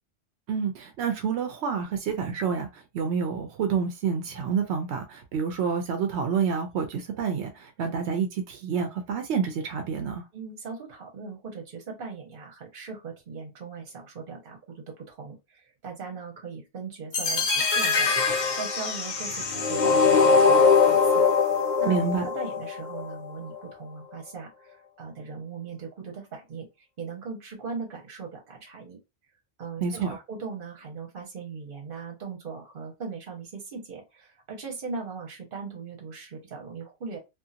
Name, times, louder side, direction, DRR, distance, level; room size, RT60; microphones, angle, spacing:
voice 1, 0.5-10.2 21.9-22.3 29.8-30.2, right 6 dB, 85° right, 0.9 m, -28 dB
voice 2, 10.3-21.3 21.8-22.0 22.2-29.0 29.6-37.2, right 5 dB, 55° right, 1.1 m, -39 dB
Logo Bumper, 17.1-23.1, left 5 dB, 50° left, 0.6 m, -22 dB
2.7 x 2.5 x 2.4 m
omnidirectional pair, 1.1 m